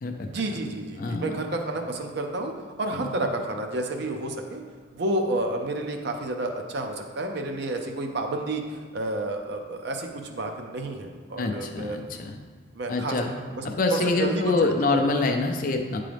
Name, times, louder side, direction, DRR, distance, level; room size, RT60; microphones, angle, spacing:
voice 1, 0.2-2.5 2.8-4.6 4.9-12.2 12.7-13.6 13.9-15.0, right 2 dB, 55° right, 3 dB, 0.5 m, -30 dB
voice 2, 1.0-1.3 2.9-3.1 11.4-12.3 12.9-13.3 13.6-16.0, left 3 dB, 40° left, 4 dB, 0.4 m, -25 dB
9.1 x 3.7 x 3.4 m, 1.5 s
head